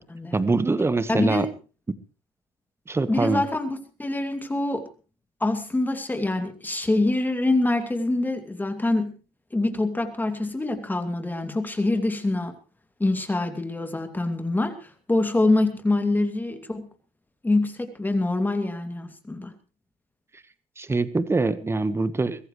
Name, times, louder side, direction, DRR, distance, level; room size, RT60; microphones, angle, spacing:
voice 1, 0.3-1.5 2.9-3.4 20.8-22.5, right 3 dB, 15° right, 13 dB, 1.4 m, -24 dB
voice 2, 1.1-1.5 3.1-4.8 5.4-9.1 9.5-12.5 13.0-16.9 17.4-19.5, left 2 dB, 10° left, 7 dB, 2.5 m, -25 dB
23.0 x 15.0 x 3.2 m, 0.34 s
supercardioid pair, 95°, 15 cm